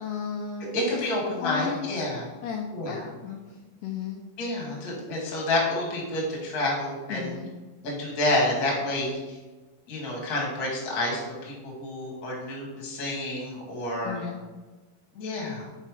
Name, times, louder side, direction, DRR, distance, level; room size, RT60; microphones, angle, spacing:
voice 1, 0.0-1.0 1.4-1.9 2.4-3.4 3.8-4.2 7.1-7.5 14.0-14.4, left 6 dB, 80° left, 2 dB, 1.9 m, -34 dB
voice 2, 0.7-2.2 2.7-3.4 4.4-7.4 7.8-9.4 9.9-14.2 15.1-15.7, left 1 dB, 40° left, -3 dB, 1.4 m, -29 dB
5.6 x 4.0 x 4.8 m, 1.2 s
omnidirectional pair, 4.0 m